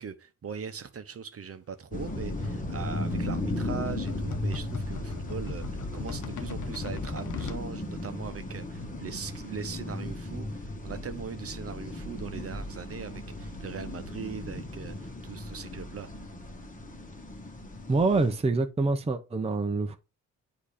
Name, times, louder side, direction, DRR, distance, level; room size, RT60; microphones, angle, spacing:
voice 1, 0.0-16.1, right 6 dB, 45° right, 0.9 m, -40 dB
sound 1, 1.9-18.4, left 1 dB, 25° left, 1.3 m, -36 dB
sound 2, 2.0-7.6, left 7 dB, 65° left, 0.9 m, -41 dB
voice 2, 17.9-20.0, right 3 dB, 20° right, 0.6 m, -26 dB
8.2 x 2.9 x 4.9 m
cardioid pair, 65°, 33 cm